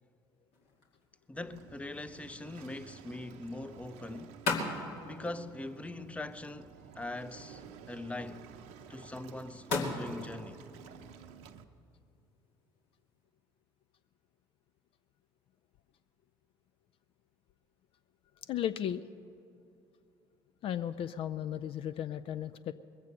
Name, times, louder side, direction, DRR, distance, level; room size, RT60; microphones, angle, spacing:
sound 1, 0.5-13.3, left 3 dB, 65° left, 2.3 m, -42 dB
voice 1, 1.3-4.4 5.0-8.5 8.9-10.6, left 2 dB, 10° left, 0.7 m, -42 dB
Waves surf, 1.3-11.6, right 7 dB, 65° right, 0.7 m, -52 dB
voice 2, 18.5-19.0 20.6-22.7, left 10 dB, 50° left, 0.4 m, -35 dB
21.5 x 8.2 x 6.5 m
hypercardioid pair, 55°, 12 cm